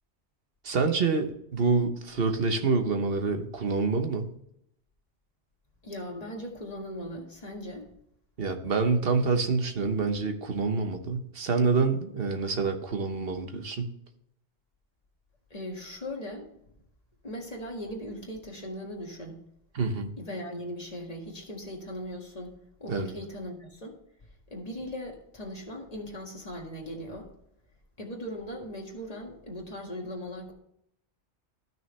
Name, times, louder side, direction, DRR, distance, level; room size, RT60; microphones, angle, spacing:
voice 1, 0.6-4.3 8.4-13.9 19.7-20.1 22.9-23.1, right 4 dB, 55° right, 6 dB, 1.2 m, -27 dB
voice 2, 5.8-7.9 15.5-16.5 17.2-19.4 20.2-22.5 22.8-24.0 24.5-27.3 28.0-30.5, equal, 35° left, 0 dB, 1.9 m, -39 dB
13.5 x 6.2 x 3.2 m, 0.75 s
omnidirectional pair, 1.2 m